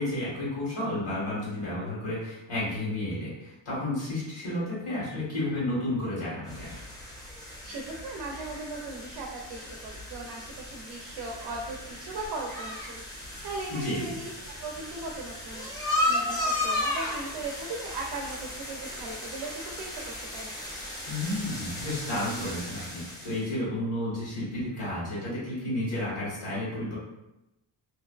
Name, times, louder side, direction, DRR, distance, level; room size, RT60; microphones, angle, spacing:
voice 1, 0.0-6.8 13.7-14.1 21.1-27.0, left 1 dB, 65° left, -7 dB, 1.5 m, -32 dB
sound 1, 6.5-23.4, left 1 dB, 10° left, 0.4 m, -35 dB
voice 2, 7.6-14.3 14.6-20.5, right 3 dB, 70° right, 0 dB, 0.5 m, -38 dB
2.6 x 2.2 x 2.3 m, 0.91 s
cardioid pair, 130°, 42 cm